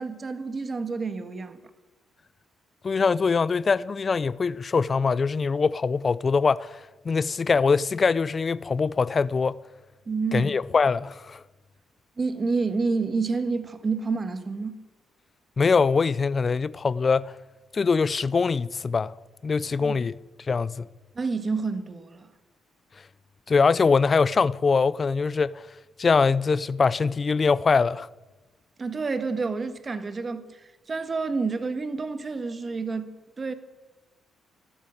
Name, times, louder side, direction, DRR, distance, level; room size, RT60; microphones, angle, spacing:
voice 1, 0.0-1.6 10.1-10.5 12.2-14.7 19.8-20.0 21.1-22.3 28.8-33.1 33.4-33.5, right 4 dB, 35° right, 1.5 m, -29 dB
voice 2, 2.8-9.6 10.3-11.4 15.6-17.3 17.7-19.1 19.4-20.2 20.5-20.9 23.5-25.7 26.0-28.1, left 5 dB, 35° left, 0.4 m, -23 dB
13.0 x 12.5 x 8.6 m
cardioid pair, 90°, 0 cm